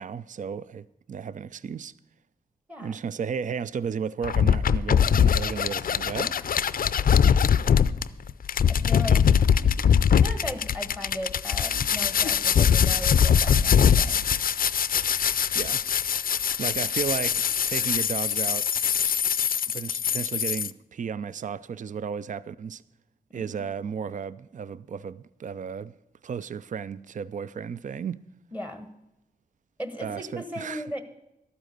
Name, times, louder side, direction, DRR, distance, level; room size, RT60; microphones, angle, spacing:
voice 1, 0.0-1.9 2.8-6.4 15.5-15.8 16.6-18.7 19.7-22.8 23.3-25.9 26.2-28.2 30.0-30.8, right 7 dB, 55° right, 0.4 m, -34 dB
sound 1, 4.2-20.7, left 8 dB, 65° left, 0.4 m, -22 dB
voice 2, 8.7-9.2 10.1-14.2 23.3-23.7 28.5-28.9 29.8-31.0, left 1 dB, 10° right, 1.3 m, -37 dB
12.5 x 8.9 x 6.6 m
wide cardioid pair, 80°, 16 cm